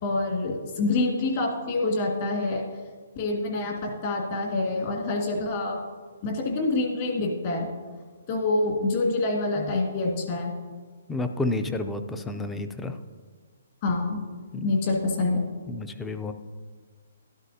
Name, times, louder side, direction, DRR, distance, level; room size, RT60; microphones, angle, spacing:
voice 1, 0.0-2.6 3.2-5.8 6.2-7.7 8.3-10.5 13.8-14.2 14.6-15.4, left 2 dB, 35° left, 0 dB, 2.1 m, -26 dB
voice 2, 11.1-13.0 14.5-14.7 15.7-16.3, left 2 dB, 5° left, 8 dB, 0.4 m, -30 dB
12.0 x 11.5 x 2.8 m, 1.5 s
hypercardioid pair, 165°, 0 cm